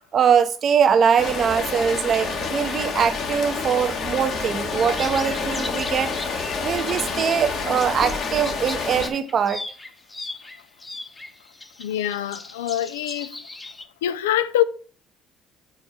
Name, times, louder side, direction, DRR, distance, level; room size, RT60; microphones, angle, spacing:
voice 1, 0.1-6.1 6.6-9.6, right 7 dB, 50° right, 0.7 m, -22 dB
Rain, 1.2-9.1, left 4 dB, 60° left, 1.4 m, -28 dB
sound 1, 4.8-7.4 7.8-13.8, left 2 dB, 20° left, 0.9 m, -38 dB
voice 2, 11.8-13.3 14.0-14.6, left 12 dB, 85° left, 0.4 m, -24 dB
4.7 x 4.3 x 5.8 m
hypercardioid pair, 60°, 0 cm